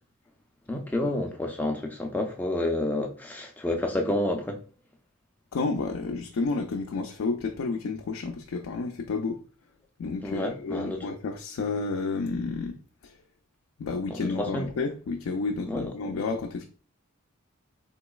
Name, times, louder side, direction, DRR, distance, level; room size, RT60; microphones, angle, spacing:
voice 1, 0.7-4.6 10.2-11.1 14.1-14.7 15.7-15.9, left 1 dB, 10° left, 0.4 m, -29 dB
voice 2, 5.5-9.4 10.0-12.8 13.0-13.2 13.8-16.6, left 4 dB, 85° left, 0.4 m, -31 dB
3.8 x 2.9 x 2.3 m
head